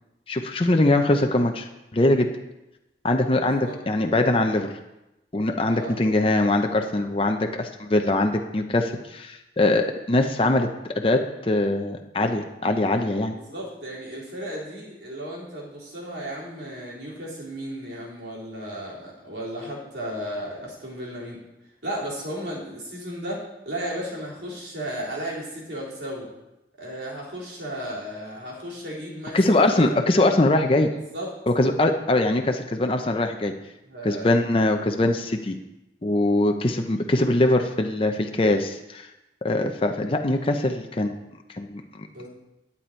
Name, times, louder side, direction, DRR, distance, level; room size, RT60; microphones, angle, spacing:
voice 1, 0.3-2.3 3.0-4.7 5.3-10.7 11.0-13.3 29.3-30.9 31.5-33.5 34.0-35.6 36.0-39.1 39.4-41.2 41.5-42.3, left 2 dB, 30° left, 5 dB, 0.6 m, -22 dB
voice 2, 3.3-3.8 5.7-6.0 13.3-21.4 21.8-26.3 26.8-30.0 31.1-31.3 33.9-34.3 42.1-42.3, equal, 75° right, -5 dB, 3.6 m, -34 dB
11.0 x 8.5 x 4.4 m, 0.95 s
head